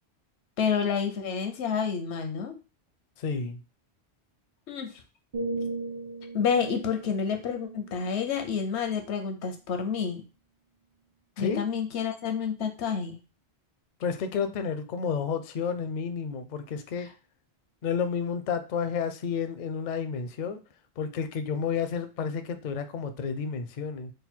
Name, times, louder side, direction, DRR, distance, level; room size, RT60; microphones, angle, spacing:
voice 1, 0.6-2.6 4.7-4.9 6.3-10.2 11.4-13.2, left 6 dB, 90° left, 5 dB, 1.0 m, -29 dB
voice 2, 3.2-3.6 11.4-11.6 14.0-17.1 17.8-20.6 21.0-24.1, left 6 dB, 55° left, 10 dB, 0.5 m, -31 dB
sound 1, 5.3-9.2 9.7-10.0, right 2 dB, 40° right, 0.5 m, -38 dB
3.8 x 2.2 x 4.3 m, 0.31 s
omnidirectional pair, 1.1 m